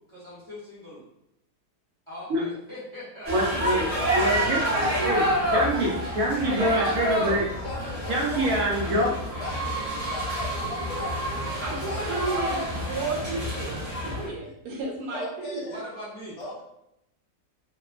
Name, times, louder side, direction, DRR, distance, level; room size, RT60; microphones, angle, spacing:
voice 1, 0.1-1.0 2.1-3.3 3.6-3.8 7.2-7.4 8.9-9.1 15.7-16.4, left 1 dB, 25° left, -11 dB, 0.7 m, -41 dB
sound 1, 3.2-14.3, equal, 35° right, 0.6 m, -28 dB
voice 2, 3.3-4.6 5.0-5.2 5.5-7.4 8.1-9.1, right 1 dB, 70° right, -3 dB, 0.9 m, -25 dB
voice 3, 7.5-12.4 15.1-15.8 16.4-16.6, left 2 dB, 70° left, -4 dB, 1.3 m, -39 dB
voice 4, 11.6-15.7, right 3 dB, 90° right, -1 dB, 1.2 m, -33 dB
2.9 x 2.0 x 2.4 m, 0.80 s
omnidirectional pair, 1.7 m